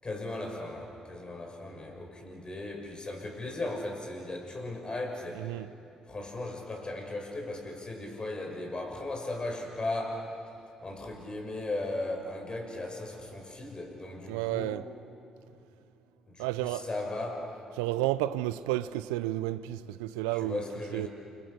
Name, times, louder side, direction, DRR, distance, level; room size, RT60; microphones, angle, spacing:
voice 1, 0.0-5.5 6.1-10.3 10.8-14.8 16.3-17.5 20.4-21.1, left 2 dB, 30° left, 6.3 m, -37 dB
voice 2, 5.3-5.7 14.3-14.9 16.4-16.9 17.8-20.6 20.9-21.1, right 15 dB, 80° right, 0.5 m, -31 dB
29.5 x 25.0 x 6.8 m
hypercardioid pair, 45°, 3 cm